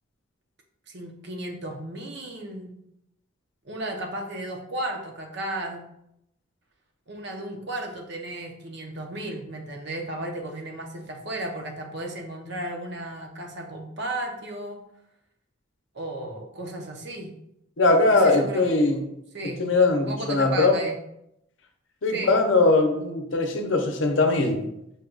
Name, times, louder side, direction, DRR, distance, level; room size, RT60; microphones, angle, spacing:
voice 1, 0.9-2.8 3.6-5.9 7.1-14.8 15.9-17.4 18.1-19.0 19.3-19.7 20.1-21.0 22.1-22.3, right 1 dB, 55° right, 2 dB, 0.7 m, -34 dB
voice 2, 17.8-19.0 19.6-20.8 22.0-24.6, left 3 dB, 65° left, 4 dB, 0.6 m, -21 dB
5.5 x 2.3 x 3.8 m, 0.80 s
head